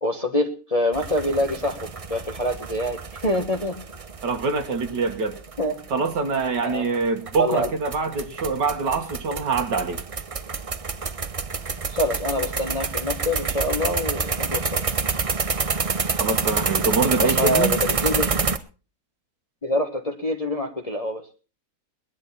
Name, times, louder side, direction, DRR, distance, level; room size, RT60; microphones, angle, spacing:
voice 1, 0.0-3.8 5.6-5.7 6.6-6.9 7.4-7.7 11.9-14.8 17.2-18.4 19.6-21.3, left 1 dB, 20° left, 1.4 m, -25 dB
sound 1, 0.9-18.6, right 4 dB, 35° right, 0.6 m, -28 dB
voice 2, 4.2-5.4 5.9-10.0 16.2-17.7, right 4 dB, 90° right, 2.5 m, -24 dB
20.5 x 11.0 x 4.3 m
omnidirectional pair, 1.8 m